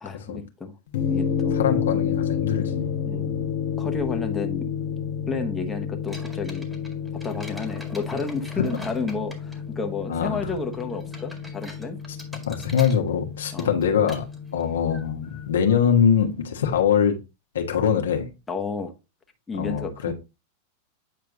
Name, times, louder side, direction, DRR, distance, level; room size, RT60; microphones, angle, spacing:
voice 1, 0.0-0.8 1.1-1.6 3.1-3.3 3.8-4.7 5.3-6.7 7.2-12.0 13.5-13.7 18.5-18.9 19.5-20.1, left 4 dB, 15° left, 1.2 m, -31 dB
sound 1, 0.9-15.5, left 7 dB, 70° left, 1.1 m, -30 dB
voice 2, 1.5-2.9 3.2-3.4 8.6-8.7 10.1-10.4 12.5-14.3 14.5-17.2 17.5-18.3 19.5-20.1, left 7 dB, 85° left, 1.3 m, -23 dB
sound 2, 6.1-17.0, equal, 5° right, 1.9 m, -46 dB
8.9 x 4.6 x 2.6 m
hypercardioid pair, 110°, 0 cm